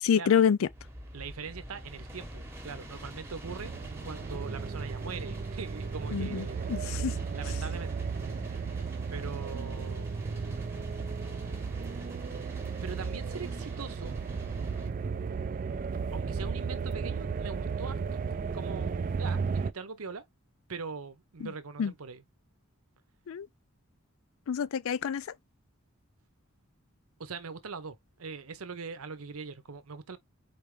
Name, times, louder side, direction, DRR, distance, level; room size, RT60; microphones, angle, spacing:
voice 1, 0.0-0.6 6.1-7.1 21.8-21.9 23.3-23.5 24.5-25.2, left 7 dB, 75° left, 0.4 m, -27 dB
sound 1, 0.7-14.9, right 1 dB, 10° right, 0.9 m, -46 dB
voice 2, 1.1-6.7 7.3-8.1 9.1-10.5 12.8-14.2 16.1-20.2 20.7-22.2 27.2-30.2, right 5 dB, 90° right, 0.8 m, -42 dB
sound 2, 3.4-19.7, right 5 dB, 40° right, 0.3 m, -34 dB
4.4 x 3.3 x 3.2 m
head